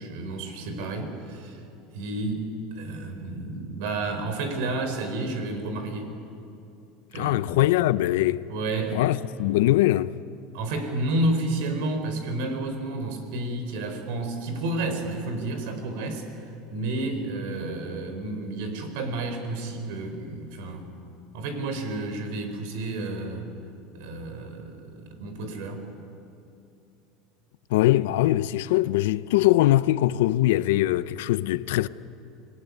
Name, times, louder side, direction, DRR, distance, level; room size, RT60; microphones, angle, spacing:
voice 1, 0.0-1.6 1.9-6.1 7.1-7.4 8.5-9.0 10.5-20.9 21.3-23.5 23.9-25.8, right 2 dB, 75° right, 4.7 m, -31 dB
voice 2, 7.1-8.4 8.9-10.1 27.7-31.9, left 15 dB, 80° left, 0.7 m, -22 dB
26.0 x 18.5 x 9.7 m
supercardioid pair, 125°, 0 cm